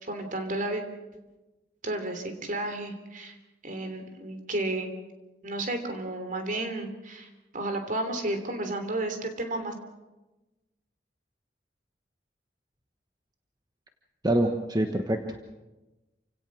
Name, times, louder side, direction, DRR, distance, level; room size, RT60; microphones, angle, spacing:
voice 1, 0.0-0.8 1.8-3.4 3.6-4.9 5.4-9.7, right 2 dB, 50° right, 6 dB, 3.2 m, -32 dB
voice 2, 14.2-15.5, right 1 dB, 25° right, 5 dB, 1.2 m, -26 dB
28.0 x 17.5 x 6.3 m, 1.1 s
head